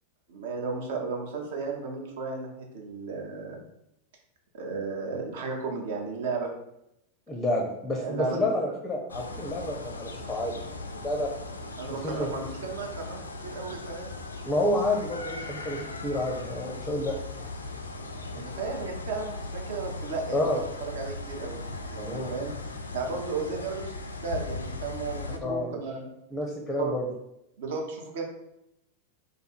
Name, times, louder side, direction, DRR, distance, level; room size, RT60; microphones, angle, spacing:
voice 1, 0.3-3.6 4.5-6.5 7.9-8.5 11.8-14.1 18.3-21.6 21.9-22.6 22.9-23.9 24.2-26.1 26.8-26.9 27.6-28.2, right 4 dB, 55° right, 1 dB, 0.7 m, -34 dB
voice 2, 7.3-11.3 11.9-12.3 14.4-17.5 18.3-18.5 20.3-20.6 22.0-22.3 25.4-25.7 26.3-27.1, left 1 dB, 10° left, -1 dB, 0.5 m, -29 dB
sound 1, 9.1-25.4, left 2 dB, 75° left, 0.3 m, -38 dB
2.5 x 2.5 x 4.1 m, 0.82 s
figure-of-eight pair, 90°, 0 cm